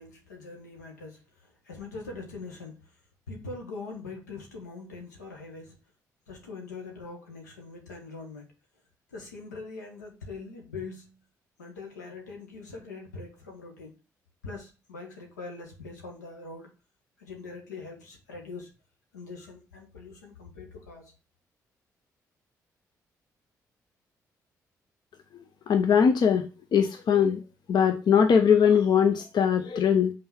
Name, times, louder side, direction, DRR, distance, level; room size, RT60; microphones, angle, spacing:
voice 1, 0.0-2.8 3.3-5.7 6.3-8.5 9.1-11.2 11.6-13.9 14.4-16.7 17.2-18.7 19.1-21.1, left 3 dB, 85° left, 1.4 m, -42 dB
voice 2, 25.7-26.5 26.7-27.4 27.7-30.1, left 7 dB, 55° left, 0.8 m, -21 dB
5.6 x 4.0 x 5.8 m
figure-of-eight pair, 40°, 9 cm